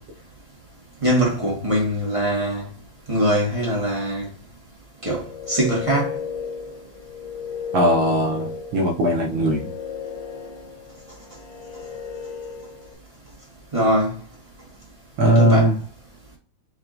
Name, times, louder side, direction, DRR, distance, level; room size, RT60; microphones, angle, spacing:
voice 1, 1.0-2.6 3.1-4.2 5.0-6.1 13.7-14.1 15.2-15.7, right 1 dB, 30° right, 0.5 m, -22 dB
sound 1, 5.1-12.9, left 6 dB, 70° left, 1.1 m, -34 dB
voice 2, 7.7-9.7 15.2-15.8, right 1 dB, 70° right, 1.4 m, -19 dB
4.6 x 4.5 x 2.5 m
omnidirectional pair, 3.3 m